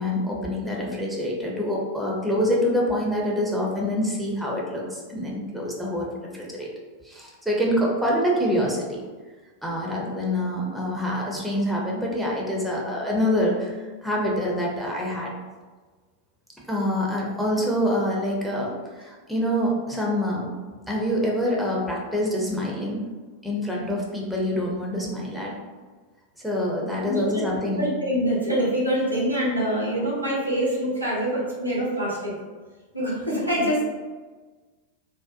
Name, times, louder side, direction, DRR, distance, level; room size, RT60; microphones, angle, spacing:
voice 1, 0.0-6.7 7.0-9.0 9.6-15.3 16.7-20.5 20.9-23.0 23.4-25.5 26.4-27.8, equal, ahead, -3 dB, 0.5 m, -26 dB
voice 2, 27.0-27.4 27.8-32.3 32.9-33.8, equal, 90° right, -5 dB, 0.7 m, -25 dB
2.5 x 2.1 x 2.5 m, 1.4 s
figure-of-eight pair, 90°, 0 cm